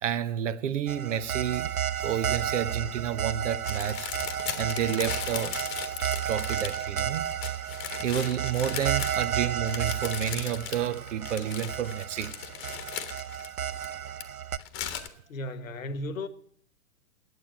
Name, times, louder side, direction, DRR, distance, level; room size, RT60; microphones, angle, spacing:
voice 1, 0.0-4.1 4.6-5.6 6.2-7.2 8.0-12.3 14.9-15.1, right 9 dB, 60° right, 0.9 m, -30 dB
sound 1, 0.9-14.6, right 9 dB, 85° right, 0.6 m, -32 dB
sound 2, 3.6-14.2 14.6-15.1, left 10 dB, 30° left, 1.2 m, -38 dB
voice 2, 15.3-16.3, left 1 dB, 70° left, 1.3 m, -34 dB
9.6 x 8.2 x 8.8 m
figure-of-eight pair, 105°, 42 cm